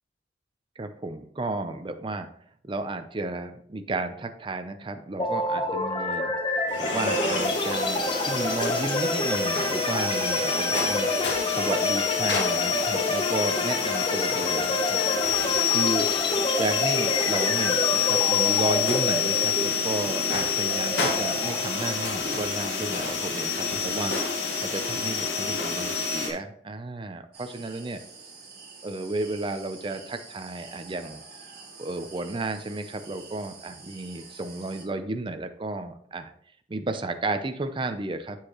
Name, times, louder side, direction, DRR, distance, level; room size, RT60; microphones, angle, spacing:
voice 1, 0.8-2.3 2.6-6.3 6.8-15.0 15.7-16.3 16.6-24.1 24.6-28.0 28.8-31.2 31.8-36.3 36.7-38.4, right 2 dB, 30° right, 8 dB, 0.5 m, -33 dB
sound 1, 5.2-23.0, left 1 dB, 30° left, 0.8 m, -29 dB
sound 2, 6.7-26.3, left 6 dB, 85° left, 1.6 m, -27 dB
sound 3, 27.3-34.8, right 4 dB, 60° right, 2.1 m, -47 dB
7.3 x 6.5 x 3.0 m, 0.62 s
head